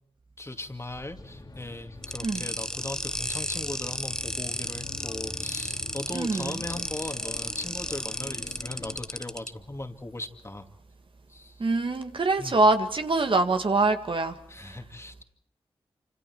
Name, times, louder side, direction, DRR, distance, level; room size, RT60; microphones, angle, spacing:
voice 1, 0.4-10.7 11.3-11.6 12.4-12.5 14.5-15.2, left 2 dB, 25° left, 2.3 m, -38 dB
Bus, 1.2-9.0, left 2 dB, 45° left, 2.5 m, -44 dB
sound 1, 2.0-9.5, left 1 dB, 5° left, 0.9 m, -33 dB
voice 2, 6.1-6.6 11.6-14.8, right 3 dB, 55° right, 1.8 m, -25 dB
26.5 x 26.0 x 4.6 m
cardioid pair, 50°, 10 cm